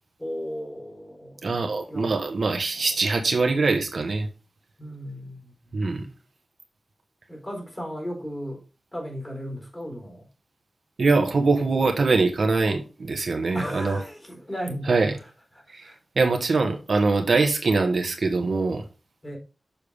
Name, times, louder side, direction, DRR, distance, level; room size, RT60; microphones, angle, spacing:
voice 1, 0.2-1.6 1.9-2.1 4.8-5.7 7.3-8.6 8.9-10.3 13.5-15.0 15.8-16.0 19.2-19.4, equal, 15° left, 4.0 m, -35 dB
voice 2, 1.4-4.3 5.7-6.1 11.0-14.0 14.8-15.1 15.7-18.8, right 3 dB, 60° right, 1.1 m, -23 dB
7.0 x 5.8 x 3.4 m
wide cardioid pair, 125°, 0 cm